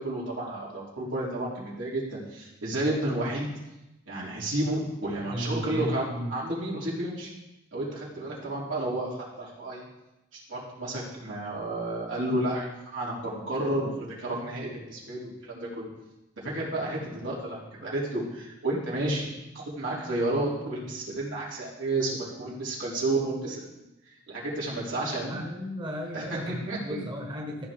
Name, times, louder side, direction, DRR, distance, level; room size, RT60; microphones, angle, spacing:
voice 1, 0.0-3.5 4.1-7.3 7.7-9.9 10.5-15.9 16.4-23.7 24.3-25.4 26.1-27.0, right 1 dB, 85° right, -5 dB, 3.2 m, -31 dB
voice 2, 5.3-6.3 25.3-27.7, equal, 25° right, 0 dB, 1.4 m, -34 dB
14.0 x 6.4 x 3.7 m, 0.94 s
head